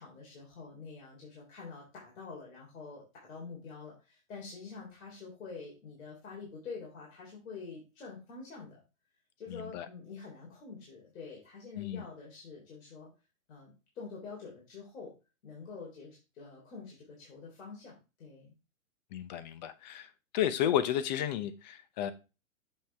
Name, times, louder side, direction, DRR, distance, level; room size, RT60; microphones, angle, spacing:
voice 1, 0.0-8.8 9.4-13.1 13.5-15.1 15.4-18.5, left 4 dB, 65° left, 3.5 m, -47 dB
voice 2, 9.5-9.9 11.8-12.1 19.1-22.1, left 10 dB, 35° left, 0.7 m, -32 dB
7.6 x 5.5 x 3.4 m
hypercardioid pair, 150°, 41 cm